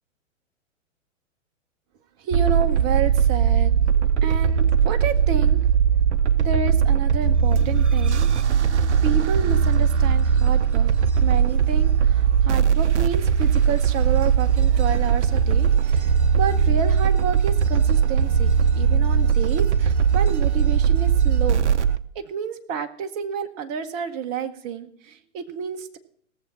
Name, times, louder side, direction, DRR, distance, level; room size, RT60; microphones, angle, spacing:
voice 1, 2.2-3.7 4.0-5.6 6.4-8.3 9.0-10.9 11.2-21.6 22.1-26.0, right 7 dB, 30° right, 7 dB, 1.0 m, -30 dB
sound 1, 2.3-22.0, right 7 dB, 60° right, 0.7 m, -19 dB
17.5 x 7.2 x 5.7 m, 0.63 s
figure-of-eight pair, 110°, 39 cm